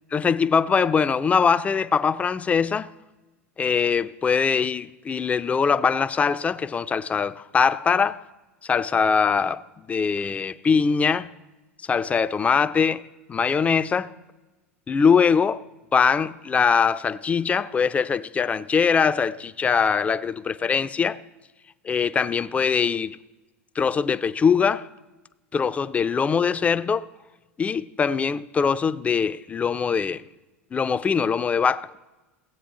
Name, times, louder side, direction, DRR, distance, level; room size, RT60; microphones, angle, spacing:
voice 1, 0.1-2.9 3.6-8.2 8.6-9.6 9.9-11.3 11.9-13.0 13.3-14.1 14.9-15.6 15.9-21.2 21.8-23.2 23.8-24.9 25.5-27.0 27.6-30.2 30.7-31.9, left 6 dB, 20° left, 0.4 m, -22 dB
16.5 x 8.1 x 3.1 m
figure-of-eight pair, 85°, 7 cm